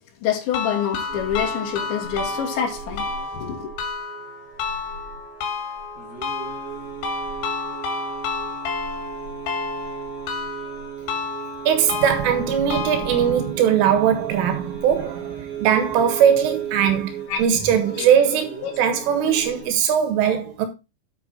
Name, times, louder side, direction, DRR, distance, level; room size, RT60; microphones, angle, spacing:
voice 1, 0.2-3.0 3.3-3.7 17.3-17.4 18.0-18.1 18.6-18.7, left 8 dB, 65° left, 4.8 m, -26 dB
sound 1, 0.5-13.5, left 5 dB, 80° left, 5.0 m, -31 dB
sound 2, 1.1-19.7, right 7 dB, 20° right, 3.9 m, -36 dB
voice 2, 11.7-20.7, right 8 dB, 80° right, 4.1 m, -20 dB
9.3 x 8.3 x 4.1 m
omnidirectional pair, 5.7 m